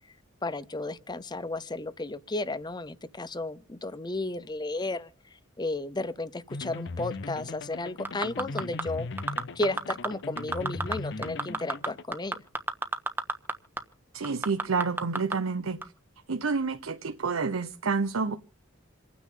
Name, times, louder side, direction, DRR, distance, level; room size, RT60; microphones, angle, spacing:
voice 1, 0.4-5.1 5.6-9.1 9.5-12.4, left 2 dB, 20° left, 0.6 m, -33 dB
sound 1, 6.5-12.0, left 3 dB, 60° left, 0.7 m, -38 dB
sound 2, 8.0-8.8 9.2-10.1 10.4-10.9 11.2-13.5 13.8-13.9 14.2-15.3 15.8-15.9, right 2 dB, 10° right, 1.1 m, -29 dB
voice 2, 14.1-15.8 16.3-18.4, right 4 dB, 85° right, 0.8 m, -29 dB
28.0 x 9.5 x 3.7 m
head